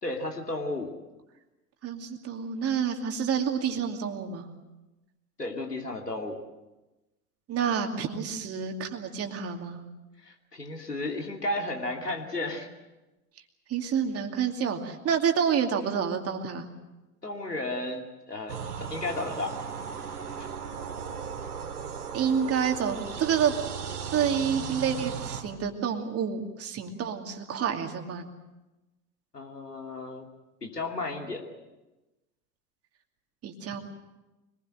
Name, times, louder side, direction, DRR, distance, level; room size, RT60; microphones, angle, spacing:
voice 1, 0.0-1.0 5.4-6.4 10.2-12.7 17.2-19.6 29.3-30.3 30.6-31.5, left 2 dB, 85° left, 2 dB, 2.8 m, -33 dB
voice 2, 1.8-4.5 7.5-9.8 13.7-16.7 22.1-23.5 24.1-28.3 33.4-33.8, right 7 dB, 30° right, 4 dB, 2.6 m, -28 dB
sound 1, 18.5-25.4, right 6 dB, 70° right, 2.8 m, -36 dB
25.0 x 20.5 x 7.8 m, 1.1 s
figure-of-eight pair, 80°, 46 cm